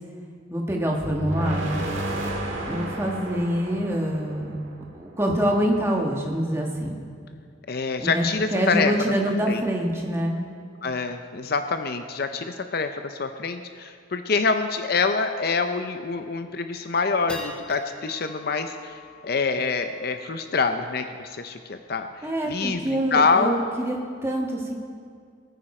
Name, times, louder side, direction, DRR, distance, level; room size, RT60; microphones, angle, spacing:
voice 1, 0.5-1.8 2.7-4.6 4.9-6.9 8.0-8.2 8.5-10.4 22.2-24.7, equal, 15° right, 0 dB, 1.4 m, -25 dB
sound 1, 1.0-5.1, right 1 dB, 65° right, 1.8 m, -32 dB
voice 2, 7.7-8.9 9.5-9.6 10.8-19.0 19.2-23.6, left 4 dB, 50° left, 8 dB, 0.6 m, -26 dB
sound 2, 13.8-13.9 14.1-14.2 14.6-14.9 15.4-15.5 16.0-16.4 16.8-23.4, left 2 dB, 5° left, 1.3 m, -46 dB
19.5 x 9.1 x 4.3 m, 2.2 s
head